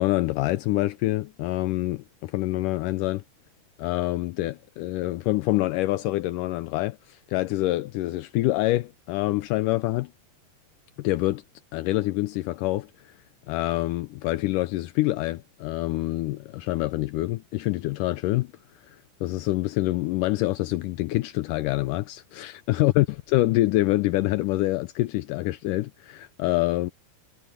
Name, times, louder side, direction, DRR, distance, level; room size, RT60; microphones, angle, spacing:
voice 1, 0.0-3.2 3.8-10.1 11.0-11.4 11.7-12.9 13.5-18.5 19.2-26.9, left 18 dB, 85° left, 1.8 m, -26 dB
omnidirectional pair, 4.4 m